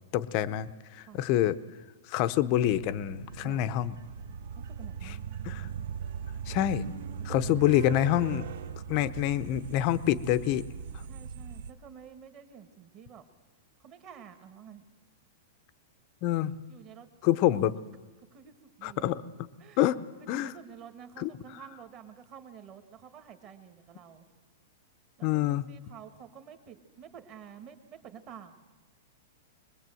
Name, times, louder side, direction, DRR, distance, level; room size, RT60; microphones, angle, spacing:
voice 1, 0.1-1.6 2.1-3.9 5.1-5.2 5.4-5.7 6.5-6.8 7.2-8.5 8.9-10.7 16.2-16.5 17.2-17.7 18.8-19.2 19.8-20.0 20.3-20.5 21.2-21.3 25.2-25.6, left 13 dB, 30° left, 13 dB, 0.7 m, -26 dB
sound 1, 2.5-11.7, right 7 dB, 60° right, 0.9 m, -39 dB
voice 2, 4.5-5.2 7.4-7.6 11.1-13.3 13.8-14.8 16.7-17.7 18.3-19.1 19.6-19.9 20.2-24.3 25.2-28.6, right 8 dB, 25° right, 8 dB, 1.5 m, -50 dB
23.0 x 21.0 x 7.7 m, 1.2 s
supercardioid pair, 180°, 0 cm